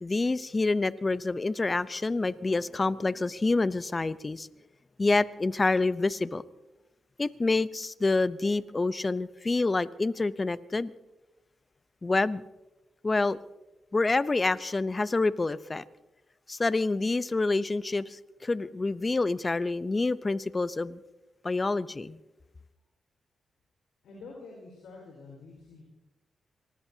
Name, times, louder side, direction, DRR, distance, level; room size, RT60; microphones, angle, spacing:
voice 1, 0.0-4.5 5.0-6.4 7.2-10.9 12.0-12.4 13.0-13.4 13.9-15.8 16.5-21.0 21.4-22.2, left 3 dB, 35° left, 16 dB, 0.7 m, -27 dB
voice 2, 24.0-25.8, left 3 dB, 85° left, -2 dB, 4.7 m, -47 dB
26.0 x 20.0 x 2.8 m, 1.0 s
supercardioid pair, 55°, 0 cm